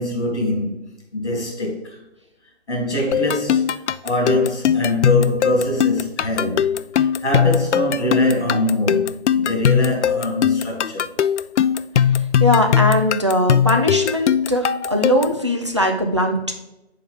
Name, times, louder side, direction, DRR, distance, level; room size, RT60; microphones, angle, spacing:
voice 1, 0.0-2.0 2.7-11.1, left 1 dB, ahead, 1.1 m, -23 dB
sound 1, 3.1-15.4, left 8 dB, 90° left, 0.5 m, -20 dB
voice 2, 12.4-16.5, left 1 dB, 25° right, 0.5 m, -20 dB
7.6 x 4.7 x 3.7 m
hypercardioid pair, 180°, 33 cm